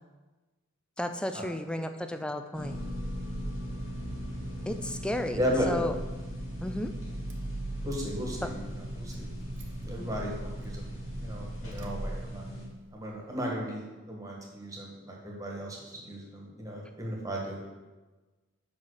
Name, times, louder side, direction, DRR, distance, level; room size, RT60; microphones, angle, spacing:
voice 1, 1.0-2.8 4.7-5.4 5.7-5.9 6.6-6.9 8.4-8.5, left 1 dB, 5° left, 7 dB, 0.3 m, -33 dB
sound 1, 2.5-12.7, equal, 75° left, 2.6 m, -40 dB
Car / Engine starting, 2.7-12.8, right 1 dB, 55° right, 0.9 m, -40 dB
voice 2, 5.3-5.7 7.8-8.6 8.9-9.3 9.8-10.9 11.2-12.6 12.9-17.6, equal, 15° right, -2 dB, 1.4 m, -35 dB
5.4 x 5.2 x 6.4 m, 1.2 s
head